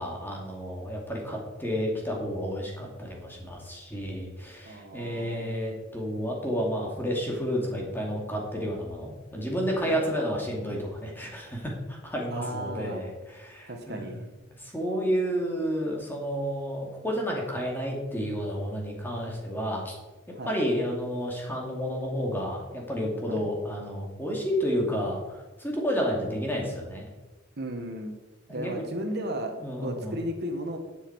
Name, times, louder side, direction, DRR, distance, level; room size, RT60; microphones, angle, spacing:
voice 1, 0.0-14.0 14.6-19.9 20.4-27.1 28.5-28.9 29.6-30.2, equal, 10° left, -1 dB, 2.5 m, -31 dB
voice 2, 4.6-5.7 9.8-10.0 12.3-13.0 13.7-14.3 20.3-20.5 23.3-23.4 27.6-28.2 28.5-29.5 29.8-30.8, right 1 dB, 55° right, 4 dB, 1.3 m, -35 dB
11.5 x 7.4 x 4.7 m, 1.1 s
head